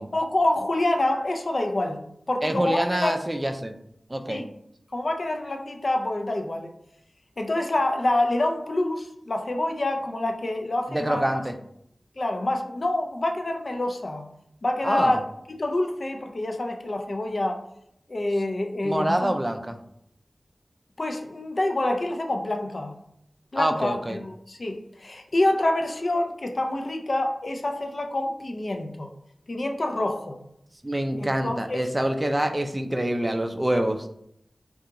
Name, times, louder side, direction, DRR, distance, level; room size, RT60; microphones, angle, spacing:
voice 1, 0.1-2.0 2.3-3.2 4.3-4.4 4.9-6.7 7.4-11.2 12.2-14.3 14.6-15.2 15.5-17.6 18.1-19.3 21.0-23.0 23.5-29.1 29.5-30.4 31.2-31.9, left 1 dB, 60° left, 4 dB, 0.4 m, -27 dB
voice 2, 2.4-3.7 4.1-4.5 10.9-11.5 14.8-15.2 18.8-19.8 23.6-24.2 30.8-34.1, right 1 dB, 25° right, 6 dB, 0.3 m, -26 dB
2.5 x 2.3 x 2.8 m, 0.73 s
cardioid pair, 45°, 0 cm